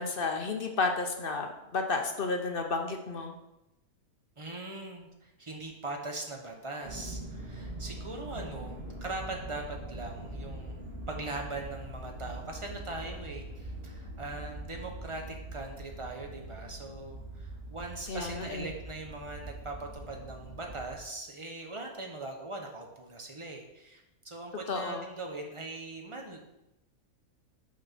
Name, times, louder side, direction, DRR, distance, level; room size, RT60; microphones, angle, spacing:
voice 1, 0.0-3.4 18.1-18.7 24.7-25.0, left 3 dB, 55° left, 4 dB, 0.7 m, -32 dB
voice 2, 4.4-10.8 11.1-26.4, right 2 dB, 25° right, 2 dB, 0.8 m, -41 dB
sound 1, 6.8-21.0, right 1 dB, 45° right, 1.3 m, -43 dB
6.1 x 4.3 x 5.8 m, 0.92 s
omnidirectional pair, 1.5 m